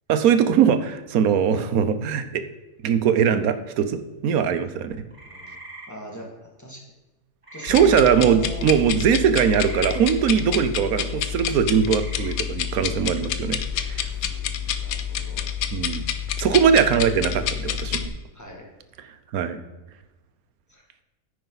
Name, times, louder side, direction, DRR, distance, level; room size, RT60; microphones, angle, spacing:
voice 1, 0.1-2.4 2.8-5.0 7.6-14.1 15.7-16.0 16.4-18.1 19.3-19.6, right 7 dB, 85° right, 11 dB, 1.2 m, -21 dB
sound 1, 5.1-5.9 7.4-8.0 9.5-10.0 11.8-12.3, right 2 dB, 25° right, 1.8 m, -40 dB
voice 2, 5.9-6.8 7.5-8.7 14.2-15.4 18.3-18.7 19.4-19.7 20.7-20.8, equal, 10° left, -1 dB, 2.0 m, -41 dB
sound 2, 7.7-18.1, left 9 dB, 85° left, 1.1 m, -28 dB
9.8 x 9.5 x 4.0 m, 1.1 s
omnidirectional pair, 1.5 m